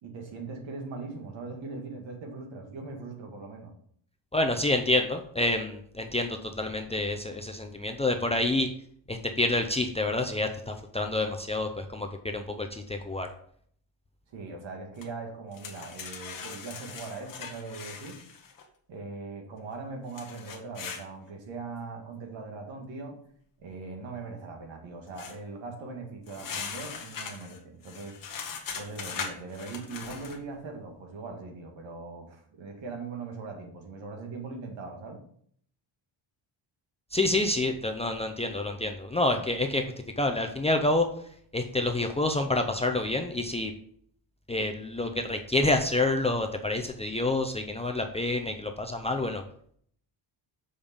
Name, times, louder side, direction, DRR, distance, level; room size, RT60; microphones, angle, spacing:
voice 1, 0.0-3.7 14.3-18.2 18.9-23.2 23.6-28.2 28.8-35.2, right 3 dB, 70° right, 3 dB, 2.0 m, -40 dB
voice 2, 4.3-8.7 9.1-13.3 37.1-39.8 40.2-41.1 41.5-43.7 44.5-49.4, left 2 dB, 15° left, 3 dB, 0.5 m, -28 dB
sound 1, 15.0-15.1 15.5-18.6 20.1-21.0 25.2-25.4 26.3-30.4, left 6 dB, 45° left, 1.2 m, -40 dB
7.1 x 5.1 x 5.4 m, 0.62 s
cardioid pair, 165°, 47 cm